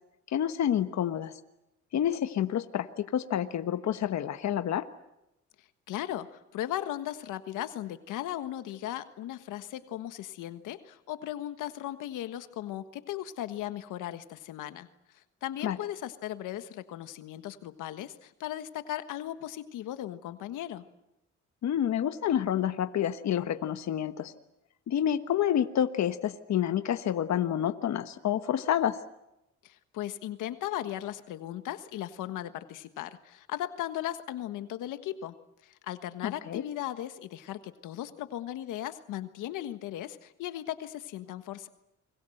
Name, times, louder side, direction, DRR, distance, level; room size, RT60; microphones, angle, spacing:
voice 1, 0.3-1.3 1.9-4.9 15.6-15.8 21.6-24.3 24.9-29.0 36.2-36.6, left 10 dB, 65° left, 9 dB, 1.3 m, -28 dB
voice 2, 5.9-14.9 15.1-20.9 29.6-35.3 35.6-41.7, left 12 dB, 90° left, 10 dB, 1.5 m, -37 dB
29.5 x 22.0 x 7.9 m, 0.88 s
cardioid pair, 90°, 30 cm